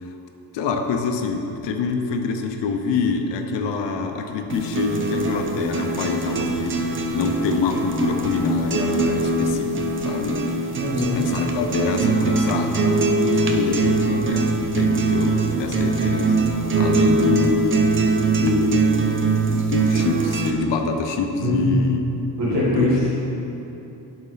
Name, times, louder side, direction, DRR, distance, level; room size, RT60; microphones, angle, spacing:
voice 1, 0.5-9.7 10.0-10.4 11.0-12.7 13.3-16.4 16.8-17.8 18.4-19.1 19.7-22.0 22.5-22.9, left 4 dB, 80° left, 5 dB, 0.8 m, -25 dB
sound 1, 4.5-20.5, right 3 dB, 30° right, 0.5 m, -22 dB
voice 2, 10.8-11.3 15.5-15.9 21.4-21.9 22.4-23.1, equal, 75° right, -8 dB, 1.6 m, -23 dB
10.5 x 4.3 x 4.0 m, 2.9 s
wide cardioid pair, 155°, 42 cm